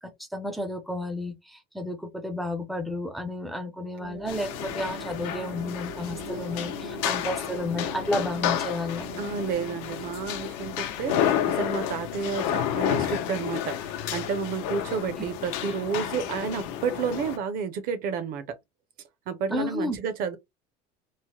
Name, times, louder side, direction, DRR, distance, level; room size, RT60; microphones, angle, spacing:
voice 1, 0.0-9.1 19.5-20.0, left 1 dB, ahead, 0.4 m, -32 dB
sound 1, 4.0-13.3, right 8 dB, 85° right, 0.8 m, -44 dB
sound 2, 4.3-17.4, left 10 dB, 80° left, 0.7 m, -31 dB
voice 2, 9.2-18.6 19.3-20.4, right 6 dB, 45° right, 0.6 m, -31 dB
3.0 x 2.1 x 2.9 m
cardioid pair, 175°, 21 cm